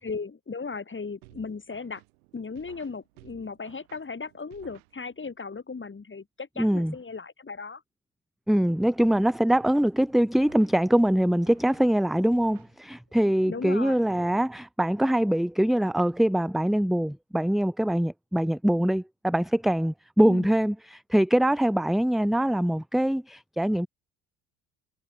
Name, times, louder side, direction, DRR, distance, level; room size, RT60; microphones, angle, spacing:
voice 1, 0.0-2.0 2.3-7.8 13.4-14.0 20.2-20.5, left 4 dB, 25° left, 6.5 m, -36 dB
sound 1, 1.2-5.4 9.0-13.2, right 24 dB, 80° right, 4.3 m, -56 dB
voice 2, 6.6-6.9 8.5-23.9, right 1 dB, ahead, 0.9 m, -23 dB
hypercardioid pair, 60°, 43 cm